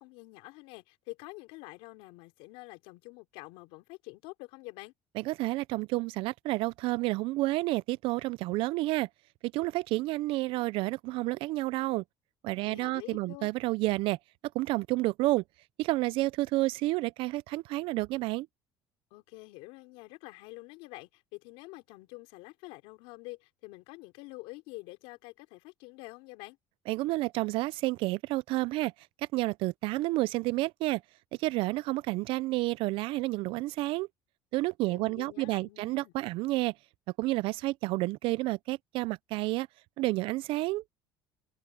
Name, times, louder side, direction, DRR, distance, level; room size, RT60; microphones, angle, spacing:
voice 1, 0.0-4.9 12.6-13.5 19.1-26.6 34.9-36.1, left 23 dB, 85° left, 4.9 m, -47 dB
voice 2, 5.2-9.1 9.5-12.0 12.4-14.2 14.5-15.4 15.8-18.5 26.9-28.9 29.2-31.0 31.4-34.1 34.5-36.7 37.2-39.7 40.0-40.8, right 20 dB, 65° right, 0.4 m, -30 dB
cardioid pair, 120°, 10 cm